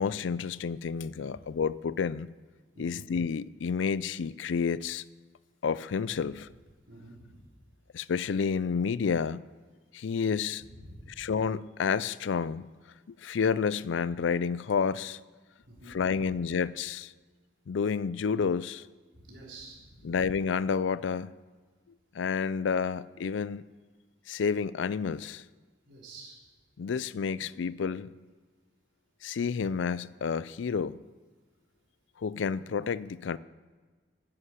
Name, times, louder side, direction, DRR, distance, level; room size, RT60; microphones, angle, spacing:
voice 1, 0.0-2.3 2.8-5.0 5.6-6.5 7.9-9.4 9.9-10.6 11.2-12.7 13.1-15.2 15.9-17.1 17.7-18.8 20.0-21.3 22.1-23.6 24.3-25.4 26.8-28.1 29.2-31.0 32.2-33.4, left 6 dB, 90° left, 0.4 m, -30 dB
voice 2, 6.8-7.5 10.1-10.4 10.6-11.1 15.7-16.2 19.1-20.1 25.9-26.4, right 2 dB, 80° right, 4.2 m, -49 dB
10.0 x 9.9 x 8.3 m
head